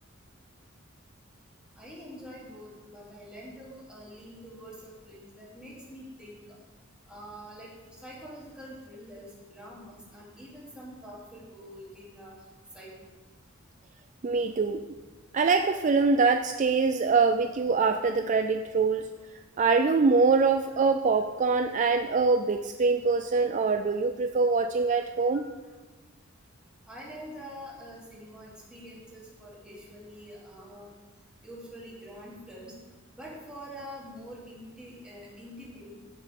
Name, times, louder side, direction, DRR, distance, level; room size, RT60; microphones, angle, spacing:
voice 1, 1.8-6.6 7.1-12.3 12.7-13.1 25.3-25.4 26.8-30.9 31.4-32.7 33.1-35.9, equal, 5° right, -7 dB, 3.4 m, -45 dB
voice 2, 14.2-14.8 15.3-19.1 19.6-25.5, right 4 dB, 35° right, 7 dB, 0.4 m, -24 dB
16.0 x 7.1 x 3.8 m, 1.3 s
head